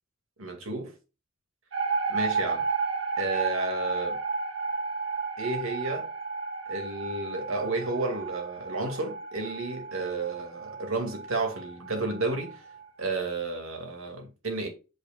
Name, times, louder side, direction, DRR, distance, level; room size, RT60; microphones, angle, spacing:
voice 1, 0.4-0.9 2.1-2.7 3.2-4.2 5.4-6.1 6.7-12.6 13.0-14.7, right 2 dB, 90° right, 2.3 m, -32 dB
sound 1, 1.7-12.9, right 4 dB, 65° right, 1.4 m, -33 dB
8.1 x 5.1 x 2.4 m
head